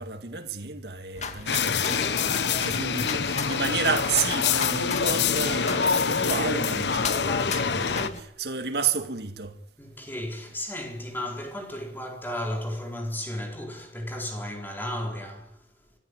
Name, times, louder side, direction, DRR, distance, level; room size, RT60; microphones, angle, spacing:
voice 1, 0.0-9.6, right 5 dB, 65° right, 1.9 m, -31 dB
sound 1, 1.2-8.2, left 4 dB, 40° left, 2.2 m, -35 dB
sound 2, 1.5-8.1, left 6 dB, 75° left, 1.0 m, -26 dB
voice 2, 9.8-15.6, left 1 dB, 10° left, 4.5 m, -34 dB
24.0 x 15.0 x 9.7 m
head